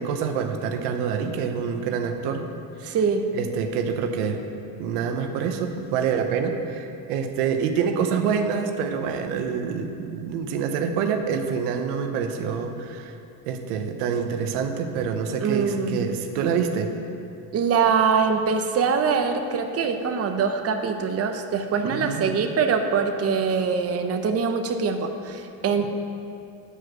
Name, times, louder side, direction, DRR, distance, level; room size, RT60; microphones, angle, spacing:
voice 1, 0.0-2.5 2.8-3.0 3.3-4.4 4.8-13.1 13.5-16.9 21.9-22.3, right 6 dB, 85° right, 5 dB, 0.9 m, -26 dB
voice 2, 2.8-3.3 15.4-16.1 17.5-25.9, right 5 dB, 35° right, 5 dB, 0.8 m, -23 dB
9.9 x 4.9 x 6.0 m, 2.6 s
supercardioid pair, 95°, 44 cm